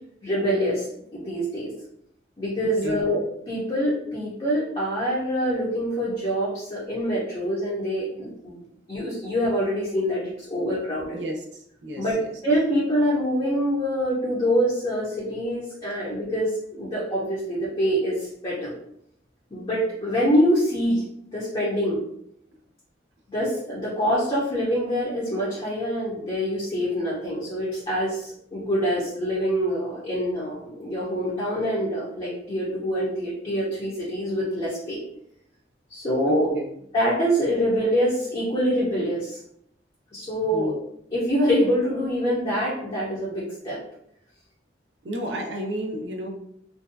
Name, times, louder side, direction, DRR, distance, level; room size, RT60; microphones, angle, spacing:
voice 1, 0.2-1.7 2.4-8.6 8.9-11.2 12.0-12.2 12.4-18.7 19.5-21.0 21.3-22.0 23.3-35.0 35.9-36.5 36.9-39.4 40.1-40.7 41.1-43.8, equal, 30° left, -7 dB, 0.6 m, -25 dB
voice 2, 11.1-12.3 15.9-16.0 36.3-36.7 40.5-40.8 45.0-46.3, equal, 70° right, 1 dB, 0.5 m, -32 dB
2.5 x 2.2 x 2.5 m, 0.73 s
head